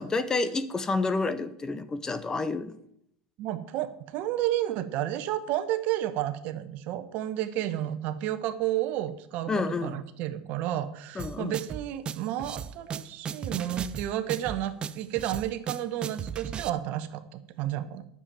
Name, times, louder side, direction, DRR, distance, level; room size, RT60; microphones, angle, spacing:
voice 1, 0.0-2.8 9.5-10.0 11.1-11.5, left 3 dB, 20° left, 12 dB, 0.9 m, -29 dB
voice 2, 3.4-9.5 9.8-18.0, right 13 dB, 60° right, 11 dB, 1.1 m, -31 dB
sound 1, 11.2-16.7, right 7 dB, 30° right, 0.6 m, -36 dB
10.0 x 7.2 x 7.4 m, 0.71 s
supercardioid pair, 115°, 3 cm